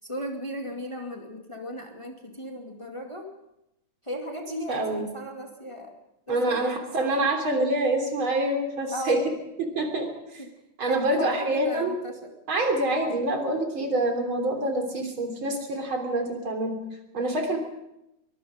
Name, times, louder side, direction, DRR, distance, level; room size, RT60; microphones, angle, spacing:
voice 1, 0.0-3.3 4.0-5.9 6.3-7.3 8.9-9.2 9.9-10.1 10.4-10.5 10.9-12.3, right 1 dB, 15° left, 2 dB, 2.3 m, -36 dB
voice 2, 4.7-5.1 6.3-9.2 9.6-10.4 10.8-12.0 12.5-16.8 17.1-17.6, right 1 dB, 70° right, 3 dB, 4.2 m, -26 dB
23.0 x 22.0 x 5.1 m, 0.88 s
omnidirectional pair, 2.3 m